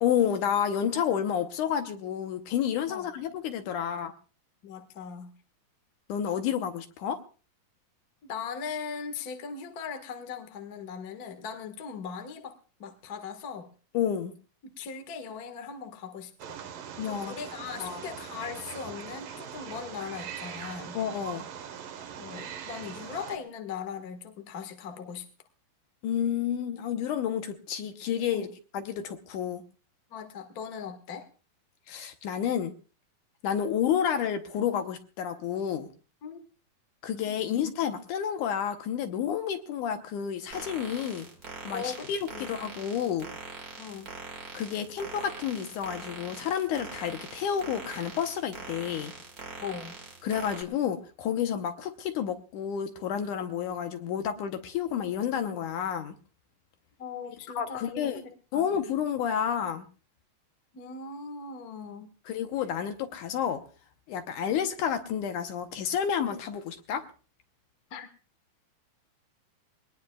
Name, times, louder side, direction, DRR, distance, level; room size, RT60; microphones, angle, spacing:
voice 1, 0.0-4.1 6.1-7.2 13.9-14.3 17.0-17.3 17.8-18.0 20.9-21.4 26.0-28.5 28.7-29.6 31.9-32.7 33.4-35.9 37.0-41.3 41.6-43.3 44.5-49.1 50.2-56.2 57.6-58.2 58.5-59.9 62.3-63.6 64.1-67.1, left 8 dB, 70° left, 7 dB, 2.2 m, -30 dB
voice 2, 4.6-5.3 8.2-13.7 14.8-16.6 17.0-21.0 22.2-25.3 28.3-28.5 30.1-31.3 36.2-36.4 41.7-42.5 43.8-44.1 49.6-50.0 57.0-58.7 60.7-62.1 67.9-68.1, left 6 dB, 45° left, 7 dB, 1.2 m, -39 dB
Wild animals, 16.4-23.4, right 8 dB, 75° right, 2.8 m, -41 dB
sound 1, 40.5-50.6, right 3 dB, 30° right, 1.9 m, -43 dB
22.5 x 19.0 x 2.3 m, 0.36 s
omnidirectional pair, 4.0 m